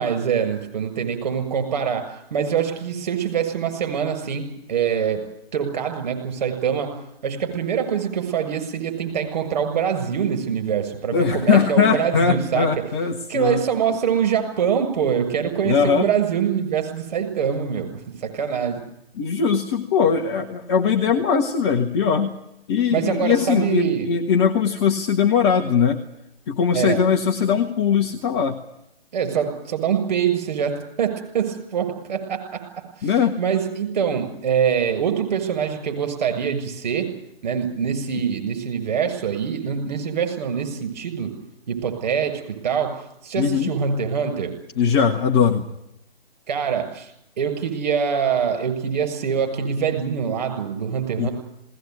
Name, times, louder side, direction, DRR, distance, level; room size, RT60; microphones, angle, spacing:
voice 1, 0.0-5.2 5.5-12.7 13.3-18.8 22.9-24.1 26.7-27.0 29.1-32.6 33.0-37.1 37.4-41.3 41.7-42.9 43.2-44.5 46.5-47.1 47.4-51.3, right 7 dB, 45° right, 7 dB, 7.3 m, -24 dB
voice 2, 11.1-13.6 15.6-16.1 19.2-22.3 22.7-26.0 26.5-28.6 33.0-33.3 43.4-43.7 44.8-45.7 51.2-51.3, left 6 dB, 25° left, 2 dB, 1.5 m, -20 dB
20.0 x 18.5 x 9.6 m, 0.82 s
figure-of-eight pair, 145°, 30 cm